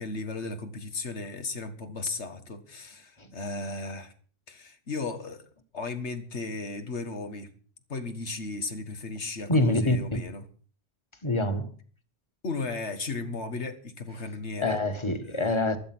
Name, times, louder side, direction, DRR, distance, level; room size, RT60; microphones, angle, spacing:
voice 1, 0.0-4.1 4.5-5.4 5.7-7.5 7.9-10.4 12.4-14.8 15.3-15.6, left 3 dB, 85° left, 2.0 m, -35 dB
voice 2, 9.5-10.2 11.2-11.7 14.6-15.8, left 2 dB, 25° left, 1.6 m, -25 dB
15.5 x 12.0 x 6.1 m
omnidirectional pair, 1.1 m